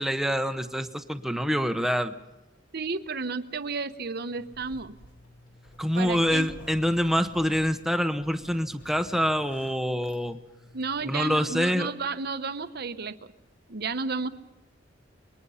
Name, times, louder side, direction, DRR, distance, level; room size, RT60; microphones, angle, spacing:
voice 1, 0.0-2.1 5.8-10.4 11.0-11.9, equal, ahead, 8 dB, 0.9 m, -26 dB
voice 2, 2.7-4.9 5.9-6.5 10.7-13.2 13.7-14.3, right 4 dB, 55° right, 11 dB, 0.9 m, -32 dB
Zipper (clothing), 4.3-11.6, left 1 dB, 70° left, 5.9 m, -51 dB
27.0 x 21.5 x 5.7 m, 1.0 s
head